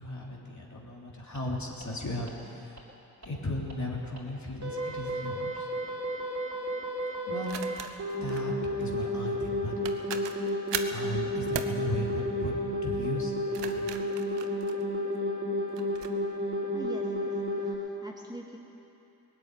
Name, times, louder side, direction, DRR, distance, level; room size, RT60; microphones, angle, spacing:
voice 1, 0.0-2.8 3.2-5.7 7.3-7.6 8.2-8.5 8.8-9.7 10.9-12.6 12.8-13.9, left 1 dB, 40° left, -3 dB, 3.5 m, -36 dB
sound 1, 1.4-1.5 1.8-1.9 2.3-2.4 2.8-2.9 3.2-3.3 3.7-3.8 4.2-4.3 4.6-17.8, left 1 dB, 40° right, 4.4 m, -32 dB
sound 2, 5.1-5.3 7.4-8.5 9.5-9.6 9.8-11.0 11.5-11.8 13.3-15.2 15.8-16.1, right 9 dB, 80° right, 0.9 m, -38 dB
voice 2, 16.7-18.6, right 1 dB, 10° right, -2 dB, 2.4 m, -43 dB
18.5 x 7.9 x 9.2 m, 2.9 s
supercardioid pair, 45°, 43 cm